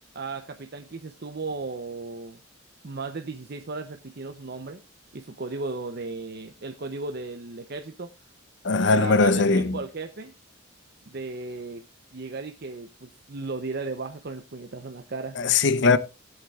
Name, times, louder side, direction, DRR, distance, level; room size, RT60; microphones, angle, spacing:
voice 1, 0.1-2.4 2.8-4.8 5.1-8.1 8.9-10.3 11.1-11.8 12.1-15.4, right 3 dB, 50° right, 0.6 m, -35 dB
voice 2, 8.6-9.8 15.4-16.0, left 4 dB, 55° left, 0.7 m, -20 dB
16.5 x 8.0 x 2.3 m
head